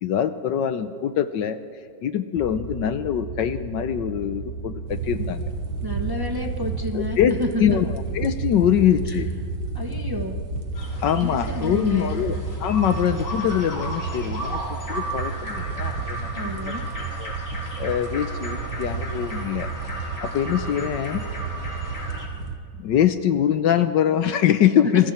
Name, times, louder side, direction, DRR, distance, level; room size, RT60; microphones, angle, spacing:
voice 1, 0.0-1.6 2.0-5.5 6.9-7.3 7.6-9.3 11.0-12.3 12.6-16.5 17.2-17.3 17.8-19.7 20.2-21.2 22.8-25.1, left 10 dB, 70° left, 11 dB, 1.4 m, -23 dB
sound 1, 2.3-13.2, right 1 dB, 20° left, 1.7 m, -35 dB
sound 2, 4.9-22.6, right 5 dB, 80° right, 2.2 m, -32 dB
voice 2, 5.8-7.8 9.1-9.2 9.7-10.4 11.2-12.2 16.3-16.9 24.8-25.1, equal, 15° right, 3 dB, 1.1 m, -30 dB
Nightingales - Fairy Tale Forest - Downmix to stereo, 10.8-22.3, equal, 40° left, 4.0 m, -35 dB
28.0 x 21.5 x 4.4 m, 2.3 s
omnidirectional pair, 2.1 m